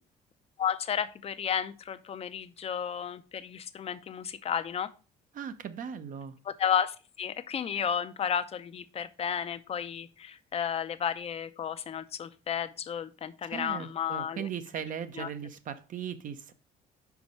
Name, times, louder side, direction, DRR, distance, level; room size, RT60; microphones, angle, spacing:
voice 1, 0.6-4.9 6.4-14.5 15.1-15.3, left 8 dB, 35° left, 0.6 m, -32 dB
voice 2, 5.3-6.3 13.5-16.5, right 8 dB, 50° right, 0.7 m, -38 dB
5.3 x 4.7 x 5.3 m
cardioid pair, 110°, 17 cm